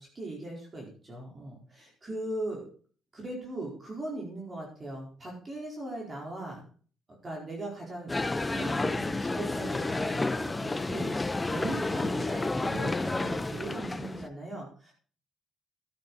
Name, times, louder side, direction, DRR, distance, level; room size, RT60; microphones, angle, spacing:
voice 1, 0.0-2.7 3.1-6.6 7.2-8.1 8.4-14.9, right 2 dB, 25° right, -1 dB, 4.5 m, -39 dB
sound 1, 8.1-14.3, left 2 dB, 15° left, 0.7 m, -30 dB
12.5 x 9.3 x 4.2 m, 0.42 s
cardioid pair, 115°, 0 cm